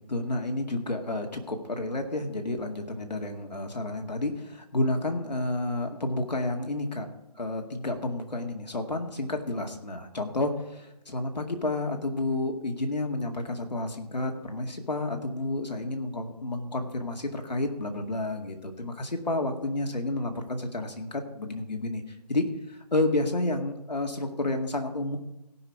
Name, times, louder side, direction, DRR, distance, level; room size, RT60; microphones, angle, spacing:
voice 1, 0.1-7.1 7.4-22.0 22.3-25.2, left 2 dB, 85° left, 3 dB, 2.1 m, -30 dB
17.5 x 5.9 x 4.7 m, 0.91 s
figure-of-eight pair, 165°, 21 cm